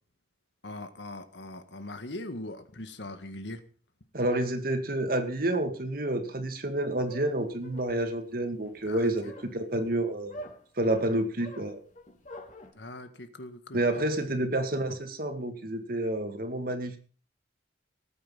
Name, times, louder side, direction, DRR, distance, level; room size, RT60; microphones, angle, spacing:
voice 1, 0.6-3.6 8.9-9.3 12.8-13.8, left 1 dB, 85° left, 9 dB, 1.9 m, -41 dB
voice 2, 4.1-10.3 10.8-11.8 13.7-17.0, right 1 dB, 55° right, 7 dB, 2.2 m, -29 dB
sound 1, 6.7-12.7, left 1 dB, 45° left, 3.2 m, -47 dB
19.0 x 8.8 x 5.7 m, 0.41 s
head